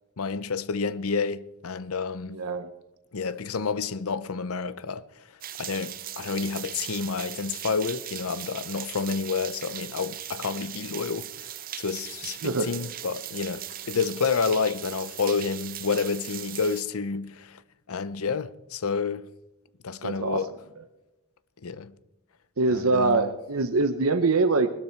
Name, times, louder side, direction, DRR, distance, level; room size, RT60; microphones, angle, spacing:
voice 1, 0.2-2.4 3.1-5.0 5.6-17.6 17.9-19.3 19.8-20.5 21.6-21.9 22.7-23.3, left 5 dB, 80° left, 0.7 m, -29 dB
voice 2, 2.3-2.7 12.4-12.7 20.0-20.4 22.6-24.7, right 3 dB, 75° right, 0.8 m, -24 dB
sound 1, 5.4-16.8, right 12 dB, 40° right, 0.6 m, -39 dB
21.0 x 12.0 x 4.5 m
head